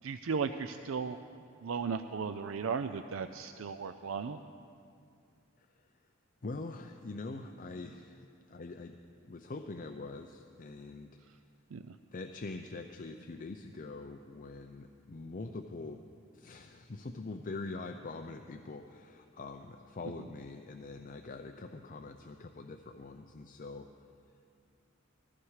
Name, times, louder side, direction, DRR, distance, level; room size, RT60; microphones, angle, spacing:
voice 1, 0.0-1.2 1.6-4.4 11.7-12.0, right 5 dB, 70° right, 9 dB, 0.5 m, -36 dB
voice 2, 6.4-9.0 9.2-11.1 12.1-16.0 16.3-23.9, left 3 dB, 40° left, 5 dB, 0.6 m, -44 dB
20.0 x 14.5 x 4.9 m, 2.5 s
head